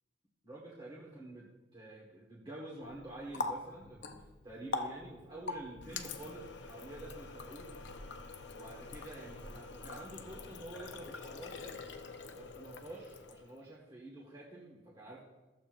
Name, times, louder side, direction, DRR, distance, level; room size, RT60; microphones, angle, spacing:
voice 1, 0.4-7.7 8.5-11.8 12.3-15.2, right 1 dB, 25° right, -6 dB, 1.6 m, -48 dB
Water tap faucet, 2.8-13.6, left 3 dB, 70° left, 0.7 m, -44 dB
15.0 x 7.7 x 2.6 m, 1.1 s
head